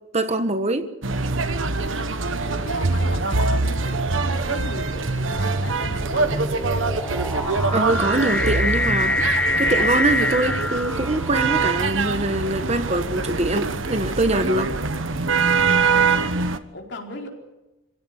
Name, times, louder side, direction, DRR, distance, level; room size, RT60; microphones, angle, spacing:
voice 1, 0.1-0.9 7.7-9.1 9.6-14.7, right 2 dB, 35° right, 9 dB, 1.4 m, -23 dB
sound 1, 1.0-16.6, right 4 dB, 80° right, 1.3 m, -24 dB
voice 2, 2.4-6.5 15.2-17.3, left 2 dB, 60° left, 1 dB, 4.6 m, -37 dB
sound 2, 4.7-11.8, left 2 dB, 5° left, 1.2 m, -26 dB
26.5 x 16.5 x 8.3 m, 1.0 s
head